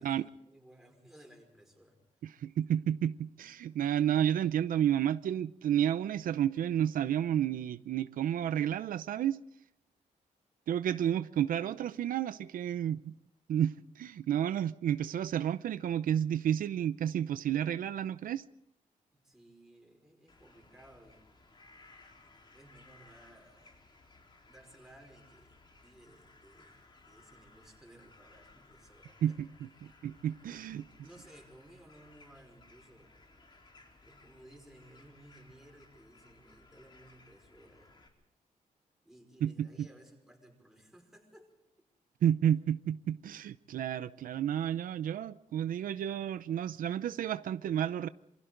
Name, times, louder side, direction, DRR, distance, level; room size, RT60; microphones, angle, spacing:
voice 1, 0.0-2.3 19.1-21.6 22.1-23.8 24.4-29.4 29.8-30.0 30.5-33.2 34.0-38.0 39.0-41.5, right 1 dB, 5° right, 5.3 m, -58 dB
voice 2, 2.2-9.4 10.7-13.1 13.5-18.4 29.2-30.8 39.4-39.7 42.2-48.1, right 10 dB, 85° right, 0.7 m, -31 dB
sound 1, 20.3-38.1, left 3 dB, 35° left, 4.1 m, -60 dB
27.5 x 25.0 x 3.9 m
wide cardioid pair, 160°, 14 cm